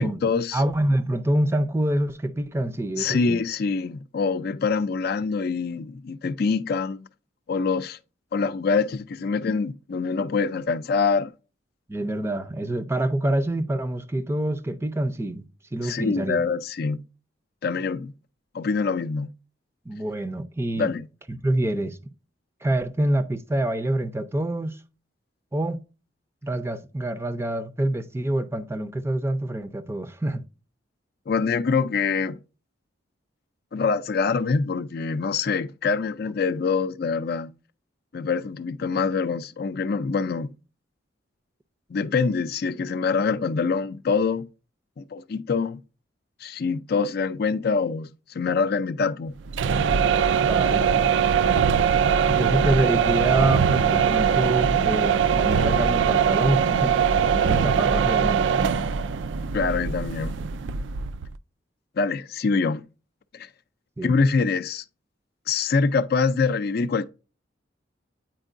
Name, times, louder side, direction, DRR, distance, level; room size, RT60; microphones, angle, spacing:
voice 1, 0.0-0.6 3.0-7.1 7.5-8.0 8.3-11.3 15.8-17.0 17.6-18.1 18.5-19.3 20.7-21.1 31.3-32.4 33.7-37.5 38.1-40.5 41.9-44.5 45.0-45.8 46.4-49.3 59.5-60.3 62.0-62.8 63.3-63.5 64.0-64.8 65.5-67.0, left 4 dB, 50° left, 0.4 m, -25 dB
voice 2, 0.5-3.4 11.9-15.4 15.7-16.4 19.9-20.9 21.3-22.0 22.6-24.8 25.5-25.8 26.4-30.5 50.5-50.8 52.3-56.9 57.3-58.4 64.0-64.1, right 1 dB, 15° right, 0.5 m, -26 dB
sound 1, 49.5-61.3, right 7 dB, 70° right, 0.3 m, -21 dB
9.0 x 4.5 x 2.5 m
head